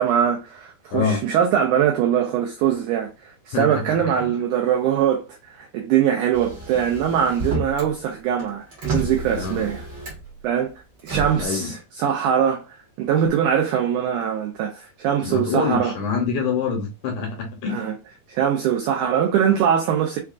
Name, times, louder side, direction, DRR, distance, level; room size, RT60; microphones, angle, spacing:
voice 1, 0.0-9.8 10.4-10.7 11.0-11.7 12.0-12.6 13.0-15.9 17.7-17.9 18.3-20.2, right 9 dB, 85° right, 1.8 m, -22 dB
voice 2, 0.9-1.3 3.5-4.3 9.3-9.7 11.4-11.7 15.2-17.9, left 5 dB, 75° left, 1.9 m, -26 dB
Motor vehicle (road), 6.3-7.9 8.3-10.4 11.0-11.5, right 2 dB, 55° right, 1.2 m, -30 dB
5.5 x 2.4 x 2.4 m
omnidirectional pair, 4.2 m